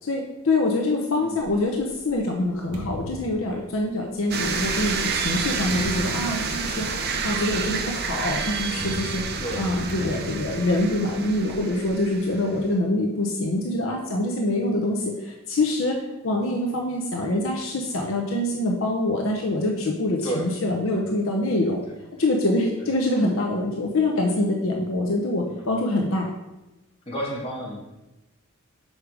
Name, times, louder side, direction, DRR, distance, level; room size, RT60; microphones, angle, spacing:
voice 1, 0.0-21.9 22.2-26.3, left 1 dB, 60° left, 1 dB, 0.7 m, -25 dB
sound 1, 1.5-4.2 4.9-12.0, equal, 85° right, 1.2 m, -39 dB
sound 2, 4.3-12.6, right 4 dB, 45° right, 0.7 m, -29 dB
voice 2, 27.1-27.8, right 1 dB, 25° left, -3 dB, 1.6 m, -31 dB
6.5 x 4.8 x 4.8 m, 1.0 s
head